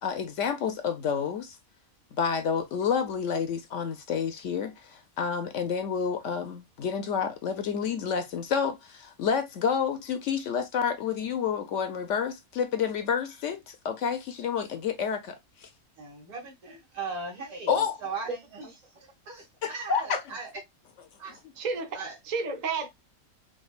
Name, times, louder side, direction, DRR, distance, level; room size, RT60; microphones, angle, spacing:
voice 1, 0.0-1.6 2.2-15.4 15.6-15.7 17.7-18.0 19.6-20.2, left 7 dB, 65° left, 0.8 m, -29 dB
voice 2, 16.0-18.7 18.9-20.6 21.2-21.4 21.9-22.2, right 4 dB, 85° right, 2.1 m, -39 dB
voice 3, 21.6-22.9, right 4 dB, 45° right, 0.6 m, -31 dB
5.1 x 2.3 x 2.3 m
omnidirectional pair, 1.5 m